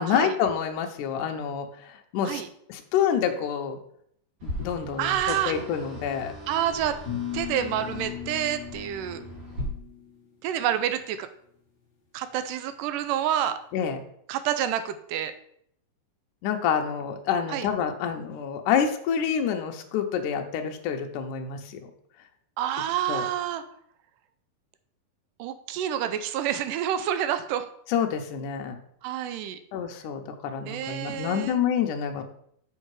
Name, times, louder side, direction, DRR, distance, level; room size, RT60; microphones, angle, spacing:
voice 1, 0.0-1.7 2.1-2.4 2.7-3.8 4.4-6.3 13.7-14.0 16.4-21.8 23.1-23.2 27.9-28.8 29.7-32.2, left 8 dB, 75° left, 4 dB, 2.2 m, -27 dB
sound 1, 4.4-9.6, equal, 50° right, 3.8 m, -39 dB
voice 2, 5.0-5.5 6.5-7.0 7.3-9.2 10.4-11.3 12.1-13.6 14.3-15.3 17.5-17.7 22.6-23.6 25.4-27.7 29.0-29.6 30.7-31.6, right 10 dB, 80° right, 11 dB, 2.1 m, -28 dB
sound 2, 7.1-10.2, left 11 dB, 45° left, 1.4 m, -37 dB
6.5 x 6.3 x 4.8 m, 0.68 s
omnidirectional pair, 3.9 m